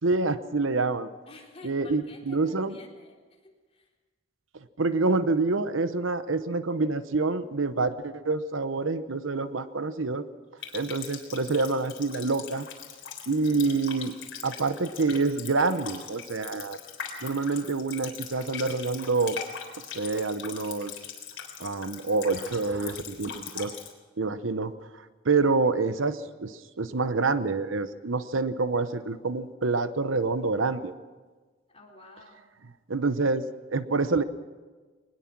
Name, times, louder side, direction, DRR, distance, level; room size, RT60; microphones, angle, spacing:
voice 1, 0.0-1.1 1.6-2.8 4.8-10.2 10.7-12.7 13.3-14.1 14.4-16.8 17.2-19.4 19.9-20.9 21.6-23.7 24.2-24.7 25.2-30.9 32.9-33.4 33.7-34.2, right 3 dB, 85° right, 12 dB, 1.0 m, -27 dB
voice 2, 1.3-3.9 13.5-13.7 31.7-32.4, left 2 dB, 30° left, -1 dB, 4.0 m, -51 dB
Water tap faucet, 10.6-23.9, left 7 dB, 70° left, 3.8 m, -41 dB
21.5 x 20.0 x 6.1 m, 1.3 s
head